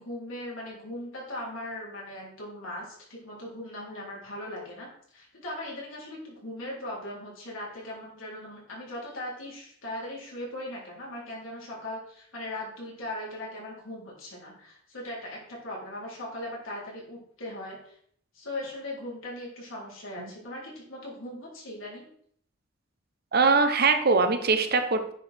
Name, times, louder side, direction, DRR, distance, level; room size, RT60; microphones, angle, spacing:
voice 1, 0.0-17.9 18.3-22.1, left 1 dB, 85° left, -4 dB, 3.7 m, -39 dB
voice 2, 23.3-25.1, right 4 dB, 50° right, 7 dB, 0.9 m, -22 dB
9.7 x 4.8 x 4.4 m, 0.63 s
head